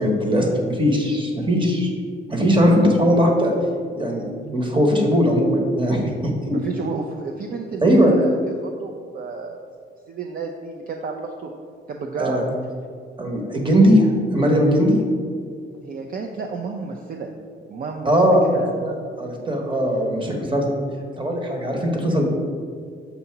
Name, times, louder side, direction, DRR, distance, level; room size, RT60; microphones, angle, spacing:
voice 1, 0.0-1.9 2.3-3.5 4.0-4.2 4.5-6.6 7.8-8.1 12.2-12.4 13.2-14.1 14.3-15.0 18.0-18.4 18.8-18.9 19.2-20.8 21.2-22.3, equal, 25° right, 1 dB, 1.1 m, -19 dB
voice 2, 6.5-9.6 10.1-11.5 11.9-12.6 15.8-17.3 17.7-18.8, right 4 dB, 45° right, 2 dB, 0.5 m, -31 dB
6.9 x 2.7 x 5.8 m, 2.1 s
cardioid pair, 90°, 20 cm